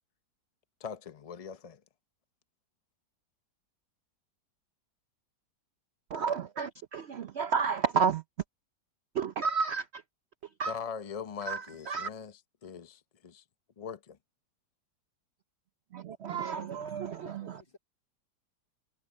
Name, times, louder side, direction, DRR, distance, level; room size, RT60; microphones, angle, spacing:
voice 1, 0.8-1.8 10.7-13.4 13.8-14.2 16.3-16.5, left 6 dB, 65° left, 0.3 m, -41 dB
voice 2, 6.1-8.2 9.1-10.0 10.6-10.8 11.5-12.1 15.9-17.6, right 6 dB, 60° right, 0.6 m, -31 dB
voice 3, 17.0-17.8, left 3 dB, 45° left, 3.7 m, -56 dB
omnidirectional pair, 1.8 m